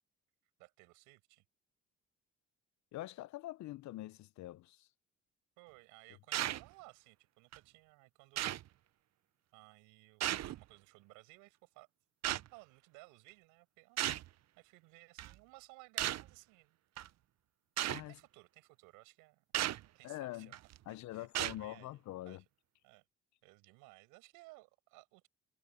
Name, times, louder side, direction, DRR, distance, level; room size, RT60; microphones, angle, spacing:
voice 1, 0.6-1.4 5.6-8.5 9.5-11.9 12.5-16.8 18.1-21.3 21.6-22.0 22.2-22.4 22.8-23.1 23.4-25.3, right 25 dB, 90° right, 6.4 m, -59 dB
voice 2, 2.9-4.9 17.9-18.2 20.0-20.5 20.9-22.4, left 16 dB, 65° left, 0.6 m, -45 dB
sound 1, 6.3-6.7 7.5-7.6 8.4-8.7 10.2-10.6 12.2-12.5 14.0-14.3 15.2-15.3 16.0-16.3 17.0-17.1 17.8-18.0 19.5-19.8 20.5-20.8 21.3-21.6, right 13 dB, 60° right, 0.7 m, -35 dB
supercardioid pair, 65°, 30 cm